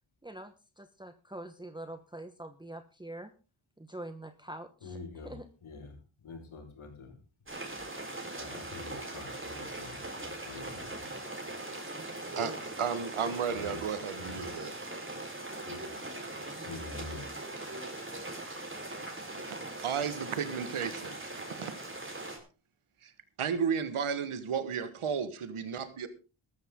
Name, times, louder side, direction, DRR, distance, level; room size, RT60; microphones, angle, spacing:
voice 1, 0.2-3.3 3.8-5.0 5.2-5.5, right 1 dB, 10° right, 1.2 m, -44 dB
voice 2, 4.8-5.3 5.6-5.9 6.2-7.2 8.4-11.1 13.5-13.8 14.2-14.5 15.7-15.9 16.5-17.3, left 3 dB, 80° left, 5.2 m, -46 dB
sound 1, 7.5-22.4, right 2 dB, 25° right, 4.5 m, -41 dB
voice 3, 12.4-14.9 19.3-21.3 21.6-21.7 23.0-23.1 23.4-26.1, right 7 dB, 85° right, 1.7 m, -33 dB
14.0 x 13.5 x 3.8 m
cardioid pair, 75°, 49 cm